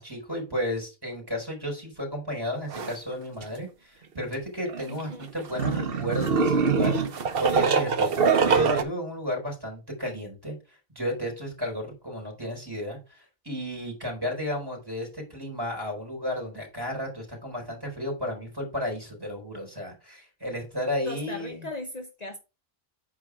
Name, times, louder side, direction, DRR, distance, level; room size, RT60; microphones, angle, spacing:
voice 1, 0.0-21.7, equal, 20° right, 4.0 m, -33 dB
sound 1, 2.7-2.9 3.4-3.5 4.7-8.8, right 5 dB, 70° right, 1.1 m, -23 dB
voice 2, 4.9-5.3 21.1-22.4, left 2 dB, 40° left, 1.1 m, -38 dB
8.4 x 4.9 x 4.6 m
omnidirectional pair, 1.0 m